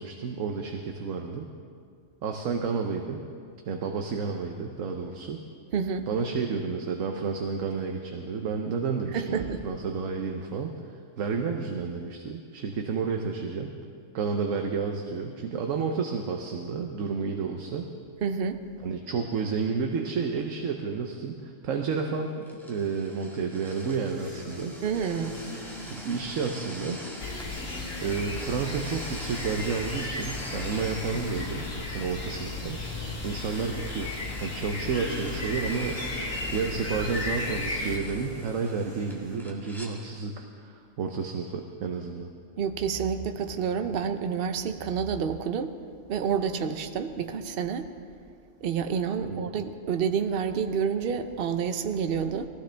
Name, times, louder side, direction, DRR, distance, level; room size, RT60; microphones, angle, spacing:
voice 1, 0.0-1.5 2.2-3.2 3.6-5.4 6.1-10.7 11.2-13.7 14.1-17.9 18.8-24.8 25.8-27.0 28.0-31.7 31.9-32.8 33.2-34.1 34.4-36.0 36.5-42.3 49.2-49.6, right 5 dB, 80° right, 3 dB, 1.2 m, -31 dB
voice 2, 5.7-6.1 9.1-9.6 18.2-18.6 24.8-25.4 42.6-45.7 46.1-47.9 48.6-52.5, right 6 dB, 55° right, 8 dB, 0.8 m, -29 dB
sound 1, 22.4-39.9, equal, ahead, 1.8 m, -45 dB
sound 2, 23.4-39.4, left 1 dB, 50° left, 3.6 m, -43 dB
sound 3, 27.2-38.0, left 2 dB, 80° left, 2.0 m, -35 dB
19.5 x 15.0 x 3.4 m, 2.2 s
omnidirectional pair, 1.3 m